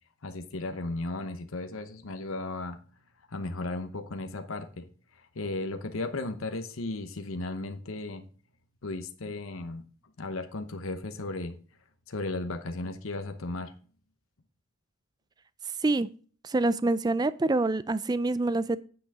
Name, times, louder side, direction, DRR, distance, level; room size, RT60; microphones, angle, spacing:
voice 1, 0.2-2.8 3.3-4.9 5.3-8.2 8.8-9.8 10.2-11.6 12.1-13.7, left 2 dB, 80° left, 0.9 m, -35 dB
voice 2, 16.4-18.8, right 2 dB, 20° right, 0.3 m, -26 dB
8.9 x 8.1 x 3.6 m
head